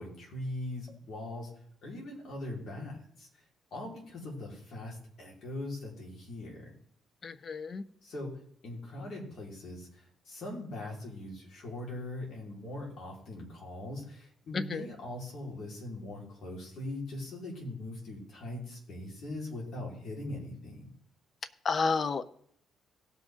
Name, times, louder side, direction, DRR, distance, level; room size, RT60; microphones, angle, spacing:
voice 1, 0.0-1.5 1.8-3.3 3.7-6.6 8.0-8.3 8.6-20.9, left 1 dB, 65° left, -2 dB, 4.6 m, -41 dB
voice 2, 7.2-7.8 14.5-14.8 21.6-22.2, left 4 dB, 45° left, 15 dB, 0.8 m, -30 dB
17.5 x 6.3 x 3.9 m, 0.64 s
cardioid pair, 90°, 0 cm